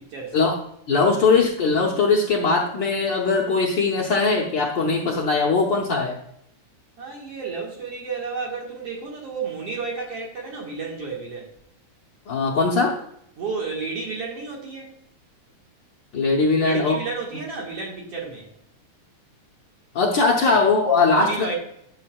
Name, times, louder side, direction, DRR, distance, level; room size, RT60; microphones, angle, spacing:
voice 1, 0.1-0.5 7.0-11.5 13.4-14.9 16.6-18.5 20.4-20.5 21.1-21.5, right 4 dB, 55° right, -2 dB, 2.4 m, -32 dB
voice 2, 0.9-6.2 12.3-13.0 16.1-17.0 19.9-21.5, left 4 dB, 80° left, -2 dB, 1.0 m, -20 dB
10.5 x 6.6 x 2.3 m, 0.72 s
omnidirectional pair, 3.5 m